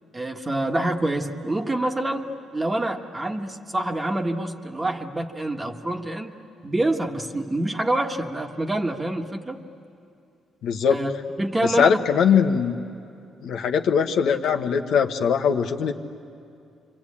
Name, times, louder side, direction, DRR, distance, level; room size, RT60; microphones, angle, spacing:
voice 1, 0.1-6.3 6.6-9.6 10.9-11.1 11.4-12.0, right 1 dB, 20° right, 4 dB, 1.5 m, -26 dB
voice 2, 10.6-11.0 11.8-12.8 13.4-15.9, left 7 dB, 75° left, 5 dB, 1.2 m, -21 dB
28.5 x 24.5 x 8.6 m, 2.5 s
cardioid pair, 105°, 0 cm